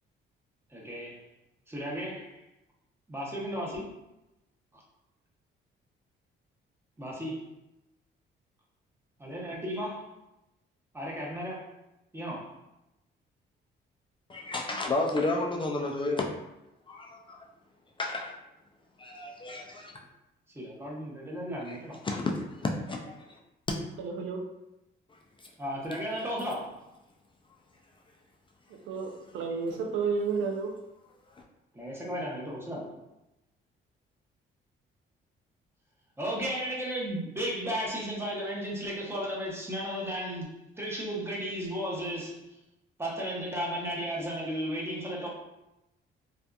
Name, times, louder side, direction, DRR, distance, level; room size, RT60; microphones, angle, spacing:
voice 1, 0.7-1.3 1.7-2.4 3.1-3.9 4.7-4.8 7.0-7.4 9.2-10.1 10.9-11.7 12.1-12.5 20.5-22.0 25.6-26.7 31.7-32.9 36.2-42.6 43.0-45.3, equal, 10° right, -4 dB, 0.8 m, -34 dB
voice 2, 14.3-16.3 16.9-17.4 18.0-18.3 19.0-19.9 21.7-21.8 22.0-23.4 23.7-23.8 29.7-29.8, left 2 dB, 25° left, 0 dB, 0.4 m, -32 dB
voice 3, 24.0-24.4 28.7-30.8, right 5 dB, 85° right, 2 dB, 0.5 m, -31 dB
2.6 x 2.4 x 2.2 m, 0.93 s
cardioid pair, 90°, 20 cm